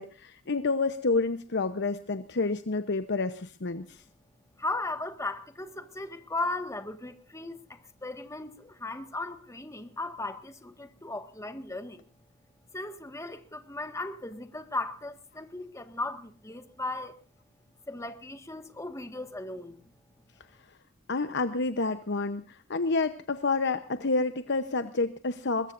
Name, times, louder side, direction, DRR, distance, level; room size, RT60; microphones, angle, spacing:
voice 1, 0.0-4.0 21.1-25.7, left 3 dB, 60° left, 0.9 m, -29 dB
voice 2, 4.6-12.0 12.7-17.1 17.9-19.8, left 2 dB, 15° left, 1.7 m, -37 dB
22.5 x 21.5 x 2.6 m
head